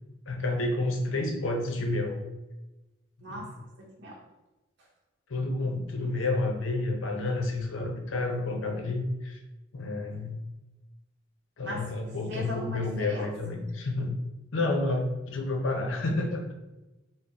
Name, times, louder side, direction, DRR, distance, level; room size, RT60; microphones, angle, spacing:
voice 1, 0.3-2.2 3.3-3.4 5.3-9.4 9.7-10.4 11.6-14.1 14.5-16.5, left 2 dB, 75° left, 3 dB, 0.6 m, -30 dB
voice 2, 3.2-4.2 11.6-11.9 12.3-13.3, equal, 60° right, -2 dB, 0.8 m, -39 dB
3.8 x 2.1 x 3.9 m, 1.0 s
head